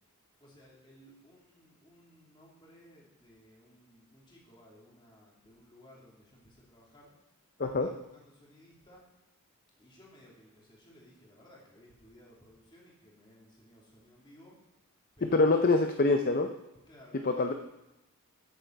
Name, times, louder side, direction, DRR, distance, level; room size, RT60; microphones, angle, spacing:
voice 1, 0.4-7.1 7.8-9.0 9.8-14.5 15.2-15.9 16.9-17.5, equal, 20° left, -4 dB, 3.0 m, -58 dB
voice 2, 15.2-16.5 17.2-17.5, left 3 dB, 40° left, 6 dB, 0.6 m, -25 dB
14.0 x 8.1 x 4.7 m, 0.94 s
head